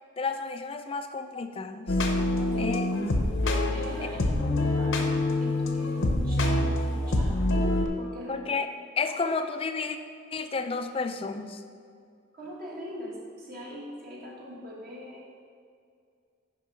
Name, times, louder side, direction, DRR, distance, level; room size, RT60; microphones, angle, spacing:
voice 1, 0.2-2.0 2.6-2.9 4.0-4.1 4.4-4.7 8.3-8.7 9.0-10.0 10.3-11.6, left 4 dB, 25° left, 8 dB, 0.4 m, -31 dB
sound 1, 1.9-7.9, left 1 dB, 60° left, 0.8 m, -26 dB
voice 2, 3.7-7.7 8.0-8.5 9.1-9.2 12.3-15.3, equal, 45° right, -4 dB, 1.2 m, -41 dB
6.9 x 5.4 x 5.4 m, 2.2 s
head